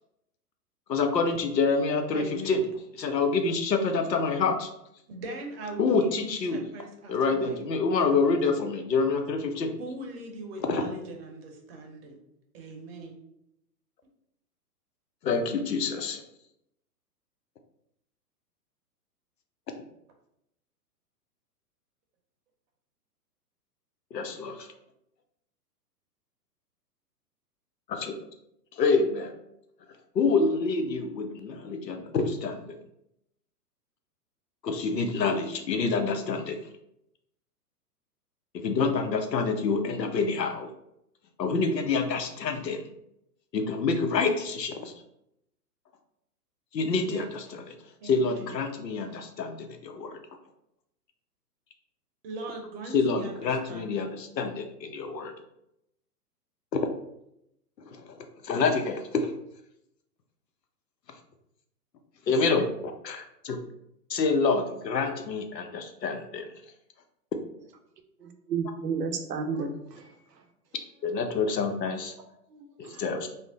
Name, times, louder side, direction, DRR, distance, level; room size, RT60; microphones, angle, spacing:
voice 1, 0.9-2.6 3.0-4.7 5.8-6.6 7.1-9.7 10.7-10.8 15.2-16.2 19.7-19.8 24.1-24.7 27.9-28.1 28.8-29.3 30.1-32.8 34.6-36.6 38.6-40.7 41.4-42.8 43.5-44.9 46.7-47.6 48.0-50.2 52.9-55.3 56.7-56.8 57.9-58.2 58.4-59.3 62.3-62.7 63.0-63.6 64.1-66.5 71.0-72.1 72.8-73.3, left 4 dB, 85° left, 6 dB, 0.7 m, -27 dB
voice 2, 2.1-2.6 5.1-8.2 9.8-12.2 12.5-13.2 47.0-47.6 48.0-48.6 52.2-54.1, right 2 dB, 40° right, 2 dB, 0.7 m, -41 dB
voice 3, 68.5-70.1 72.5-73.0, right 5 dB, 75° right, 5 dB, 0.7 m, -32 dB
2.5 x 2.0 x 3.6 m, 0.79 s
hypercardioid pair, 115°, 48 cm